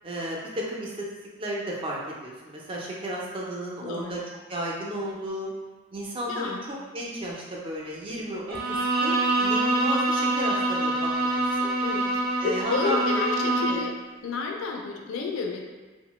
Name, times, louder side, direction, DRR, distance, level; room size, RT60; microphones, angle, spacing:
voice 1, 0.0-1.1 1.4-4.2 4.5-5.5 5.9-11.7 12.4-13.8, right 1 dB, 25° right, -3 dB, 0.4 m, -33 dB
voice 2, 3.8-4.1 6.3-6.6 11.8-12.0 12.4-14.0 14.2-15.6, left 4 dB, 60° left, 2 dB, 0.3 m, -30 dB
Bowed string instrument, 8.5-13.9, right 2 dB, 85° right, 0.6 m, -25 dB
2.8 x 2.0 x 3.0 m, 1.3 s
head